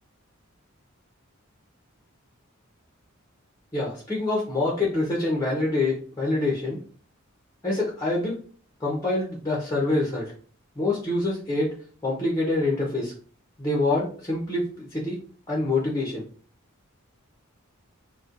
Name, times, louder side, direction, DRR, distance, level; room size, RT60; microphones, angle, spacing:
voice 1, 3.7-6.8 7.6-8.4 8.8-10.3 10.8-11.7 12.0-13.1 13.6-15.2 15.5-16.2, left 2 dB, 15° left, -3 dB, 0.7 m, -26 dB
4.1 x 2.2 x 2.4 m, 0.42 s
head